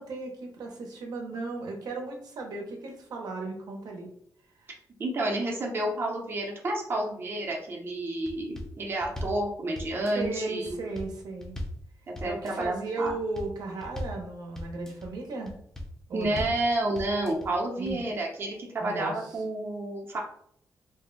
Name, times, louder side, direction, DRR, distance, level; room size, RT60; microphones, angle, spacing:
voice 1, 0.0-4.1 4.5-4.7 10.1-11.6 12.2-15.5 16.1-16.6 17.8-18.0 18.8-19.4, right 3 dB, 75° right, 1 dB, 0.6 m, -35 dB
voice 2, 5.0-10.8 12.2-13.1 16.1-20.2, right 1 dB, 35° right, -1 dB, 0.6 m, -30 dB
sound 1, 8.3-8.7 9.0-9.4 9.8-10.3 10.7-11.1 11.4-11.8 12.2-12.7 13.1-13.5 13.8-14.2 14.6-15.1 15.5-15.9 16.2-16.6 17.0-17.5 17.9-18.0, left 1 dB, 5° left, 0.4 m, -38 dB
2.6 x 2.1 x 3.7 m, 0.67 s
wide cardioid pair, 155°, 7 cm